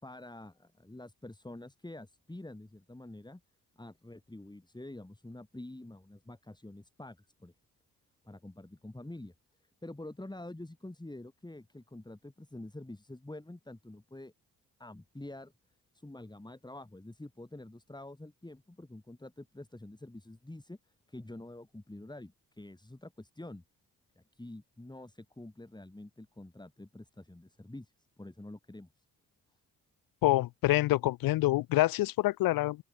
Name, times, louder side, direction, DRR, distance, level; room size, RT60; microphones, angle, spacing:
voice 1, 0.0-3.4 3.8-7.5 8.2-9.3 9.8-14.3 14.8-15.5 15.9-23.6 24.2-29.0, left 1 dB, 10° left, 4.9 m, -47 dB
voice 2, 30.2-32.8, left 17 dB, 85° left, 0.6 m, -26 dB
open air
cardioid pair, 60°, 34 cm